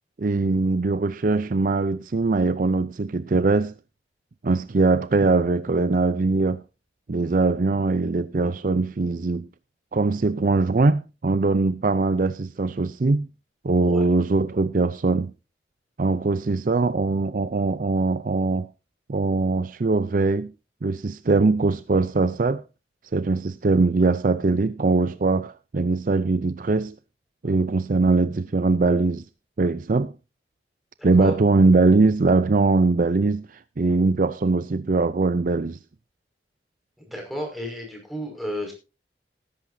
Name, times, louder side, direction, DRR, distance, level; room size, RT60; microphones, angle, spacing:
voice 1, 0.2-3.7 4.4-6.6 7.1-9.5 9.9-13.3 13.6-15.3 16.0-18.7 19.1-20.5 20.8-22.6 23.1-26.9 27.4-29.2 29.6-30.1 31.0-33.5 33.8-35.8, right 3 dB, 50° right, 0.5 m, -21 dB
voice 2, 31.0-31.4 37.1-38.7, equal, ahead, 5.4 m, -33 dB
19.0 x 10.5 x 2.7 m
head